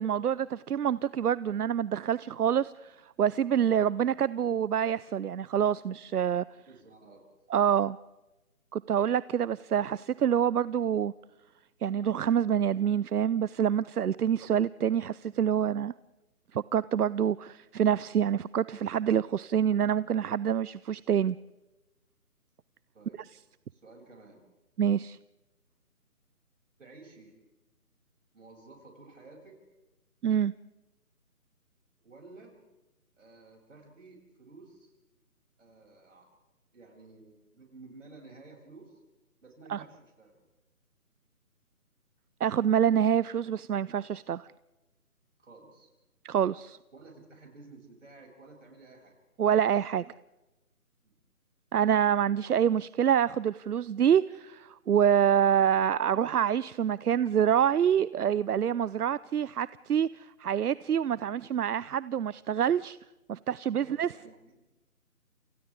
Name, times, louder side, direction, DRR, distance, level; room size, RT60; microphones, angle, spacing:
voice 1, 0.0-6.5 7.5-8.0 8.7-11.1 11.8-15.9 16.5-21.4 24.8-25.2 30.2-30.5 39.7-39.8 42.4-44.4 46.2-46.8 49.4-50.1 51.7-63.0 63.3-64.1, right 9 dB, 80° right, 19 dB, 0.6 m, -26 dB
voice 2, 6.7-7.2 22.9-23.2 23.7-24.4 26.8-27.4 28.3-29.6 32.0-32.6 33.2-34.9 35.6-36.3 36.7-39.0 39.4-40.4 45.4-45.9 46.9-49.2 51.0-51.2 63.7-64.7, right 3 dB, 55° right, 1 dB, 7.6 m, -53 dB
30.0 x 28.5 x 3.7 m, 1.1 s
hypercardioid pair, 175°, 45 cm